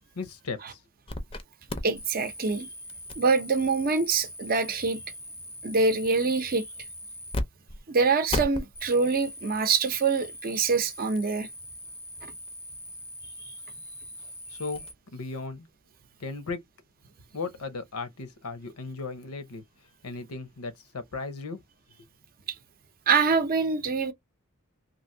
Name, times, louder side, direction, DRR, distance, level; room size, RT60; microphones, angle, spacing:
voice 1, 0.1-0.8 14.5-14.8 15.1-15.7 16.2-16.6 17.3-19.6 20.0-21.6, left 4 dB, 80° left, 0.8 m, -36 dB
sound 1, 1.1-1.4 1.7-7.4 7.7-7.8 8.3-14.9, left 1 dB, 25° left, 0.5 m, -39 dB
voice 2, 1.8-2.7 3.2-5.0 5.6-6.6 7.9-11.5 12.2-12.3 23.1-24.1, right 4 dB, 40° right, 0.6 m, -25 dB
3.0 x 2.5 x 2.6 m
head